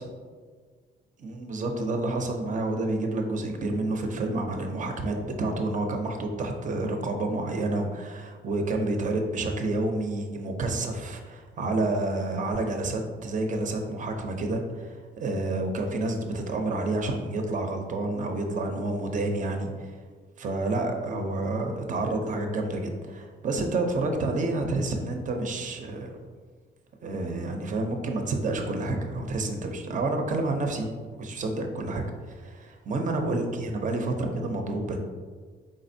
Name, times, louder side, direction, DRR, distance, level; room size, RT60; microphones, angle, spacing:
voice 1, 1.2-19.9 20.4-26.2 27.0-35.0, right 2 dB, 40° right, 4 dB, 0.6 m, -29 dB
4.2 x 3.7 x 2.7 m, 1.6 s
cardioid pair, 90°, 20 cm